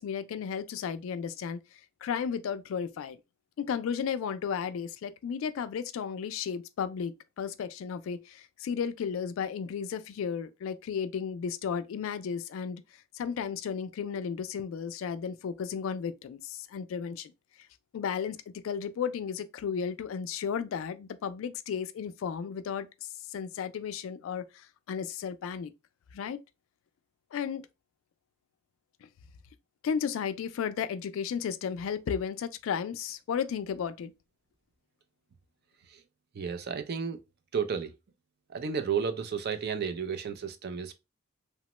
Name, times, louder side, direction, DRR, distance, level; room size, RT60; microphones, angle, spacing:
voice 1, 0.0-1.6 2.0-3.2 3.6-12.8 13.1-17.3 17.9-25.7 26.1-26.4 27.3-27.6 29.8-34.1, left 7 dB, 70° left, 0.3 m, -34 dB
voice 2, 36.3-37.2 37.5-37.9 38.5-40.9, right 6 dB, 50° right, 0.4 m, -32 dB
2.9 x 2.1 x 2.9 m
head